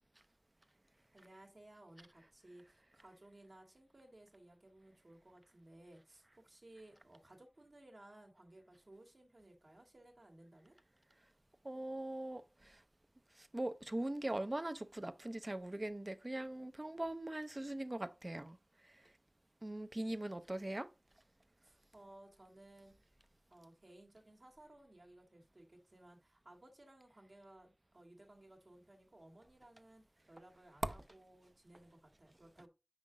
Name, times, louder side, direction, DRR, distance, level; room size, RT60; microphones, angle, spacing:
voice 1, 1.1-10.8 21.6-23.0 23.5-32.7, right 1 dB, 70° right, 1.7 m, -60 dB
voice 2, 11.6-12.8 13.3-18.6 18.8-19.1 19.6-20.9, right 1 dB, 40° right, 0.6 m, -41 dB
5.8 x 5.0 x 3.7 m
wide cardioid pair, 45°, 0 cm